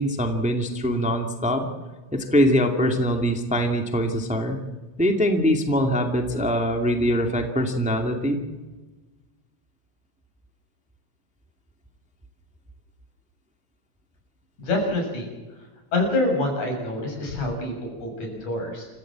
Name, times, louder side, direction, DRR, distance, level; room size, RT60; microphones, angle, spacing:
voice 1, 0.0-1.7 2.1-4.6 5.0-8.4, equal, 5° right, 4 dB, 1.8 m, -23 dB
voice 2, 14.6-15.3 15.9-18.9, left 2 dB, 85° left, 2 dB, 8.2 m, -26 dB
28.0 x 15.0 x 7.5 m, 1.2 s
omnidirectional pair, 3.3 m